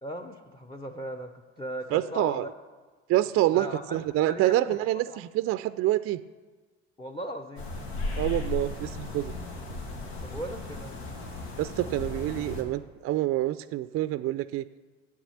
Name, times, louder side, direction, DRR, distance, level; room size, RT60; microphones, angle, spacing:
voice 1, 0.0-1.3 1.6-2.5 3.5-4.0 4.3-4.6 4.9-5.2 7.0-7.7 9.6-9.7 10.2-11.1, equal, 15° left, 6 dB, 0.8 m, -37 dB
voice 2, 1.9-2.4 3.1-6.2 8.2-9.3 11.6-14.6, right 14 dB, 45° right, 15 dB, 0.4 m, -27 dB
sound 1, 7.6-12.6, left 3 dB, 80° left, 1.5 m, -36 dB
8.4 x 7.2 x 7.1 m, 1.4 s
hypercardioid pair, 60°, 32 cm